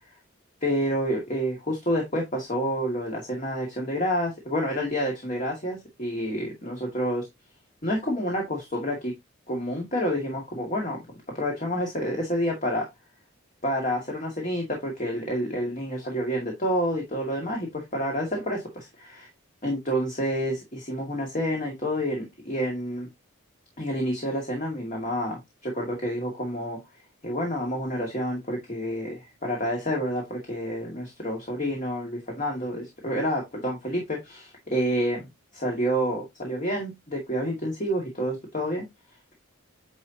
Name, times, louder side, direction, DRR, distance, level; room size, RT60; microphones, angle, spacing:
voice 1, 0.6-7.3 7.8-9.1 9.5-11.0 11.3-12.9 13.6-19.3 19.6-23.1 23.8-26.8 27.2-35.3 35.5-38.8, equal, 35° left, 0 dB, 2.2 m, -29 dB
9.7 x 4.2 x 2.9 m, 0.19 s
head